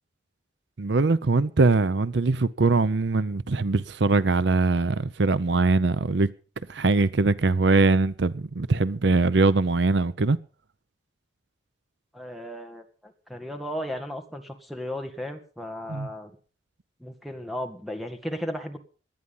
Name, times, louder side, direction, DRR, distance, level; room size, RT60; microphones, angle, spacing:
voice 1, 0.8-6.3 6.7-10.4 15.9-16.1, right 3 dB, 65° right, 0.6 m, -22 dB
voice 2, 12.1-16.3 17.0-18.8, equal, ahead, 1.9 m, -35 dB
18.0 x 11.0 x 5.5 m
head